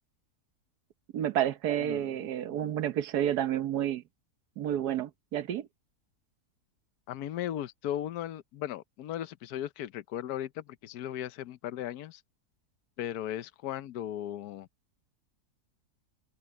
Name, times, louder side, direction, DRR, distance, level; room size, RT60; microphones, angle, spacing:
voice 1, 1.1-4.0 4.6-5.7, right 11 dB, 85° right, 1.5 m, -30 dB
voice 2, 7.1-12.2 13.0-14.7, left 11 dB, 75° left, 1.3 m, -37 dB
omnidirectional pair, 1.7 m